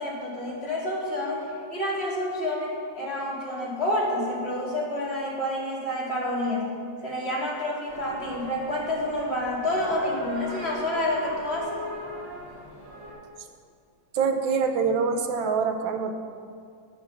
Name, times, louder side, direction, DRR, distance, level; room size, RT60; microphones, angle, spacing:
voice 1, 0.0-1.4 1.7-6.7 7.0-11.8, left 1 dB, 35° left, -5 dB, 2.5 m, -28 dB
sound 1, 7.9-13.1, left 1 dB, 45° right, 3.8 m, -41 dB
voice 2, 14.1-16.1, right 5 dB, 90° right, 6 dB, 1.6 m, -25 dB
9.8 x 7.2 x 6.8 m, 2.3 s
omnidirectional pair, 2.0 m